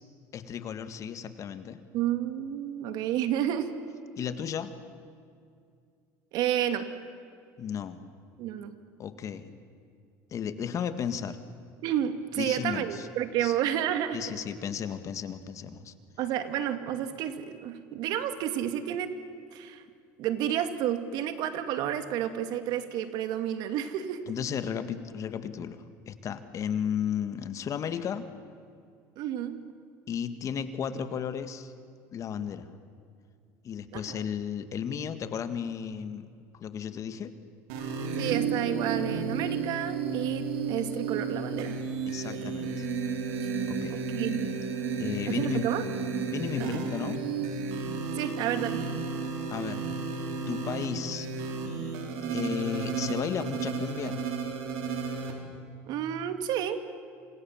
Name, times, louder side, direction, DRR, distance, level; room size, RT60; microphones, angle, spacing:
voice 1, 0.3-1.8 4.2-4.7 7.6-8.0 9.0-9.5 10.3-11.4 12.4-13.1 13.4-13.6 14.1-15.9 24.3-28.2 30.1-31.7 32.1-32.7 33.6-36.3 36.5-37.3 42.1-42.9 43.7-44.0 45.0-45.7 46.3-47.2 49.5-49.8 50.4-51.3 52.3-54.2, left 8 dB, 45° left, 10 dB, 1.9 m, -34 dB
voice 2, 1.9-3.7 6.3-6.9 8.4-8.7 11.8-14.2 16.2-19.1 19.5-19.8 20.2-24.2 29.2-29.6 33.9-34.2 38.2-41.8 42.3-42.7 43.4-43.5 43.9-44.5 45.3-45.8 46.6-46.8 48.1-48.9 55.9-56.8, right 10 dB, 65° right, 9 dB, 2.3 m, -31 dB
sound 1, 37.7-55.3, right 5 dB, 85° right, 4.1 m, -32 dB
28.0 x 26.5 x 7.4 m, 2.3 s
supercardioid pair, 100°, 8 cm